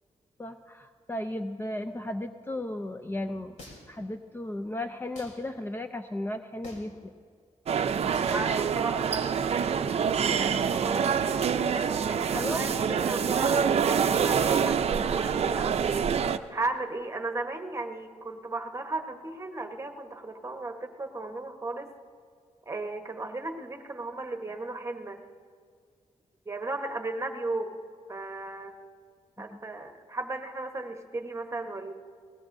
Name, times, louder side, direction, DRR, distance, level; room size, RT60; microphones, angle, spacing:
voice 1, 0.4-3.6 3.9-7.1 12.3-12.8 29.4-29.6, left 1 dB, 20° left, 7 dB, 0.5 m, -35 dB
sound 1, 3.6-4.0 5.1-5.4 6.6-7.0 8.1-8.4, left 2 dB, 75° left, 3.5 m, -46 dB
sound 2, 7.7-16.4, right 7 dB, 55° right, 0.5 m, -26 dB
voice 2, 8.1-11.1 11.7-16.1 16.5-21.9 22.7-25.2 26.5-27.8 28.1-28.7 29.4-31.9, right 2 dB, 25° right, 5 dB, 1.2 m, -36 dB
21.0 x 18.5 x 2.7 m, 2.1 s
cardioid pair, 105°, 12 cm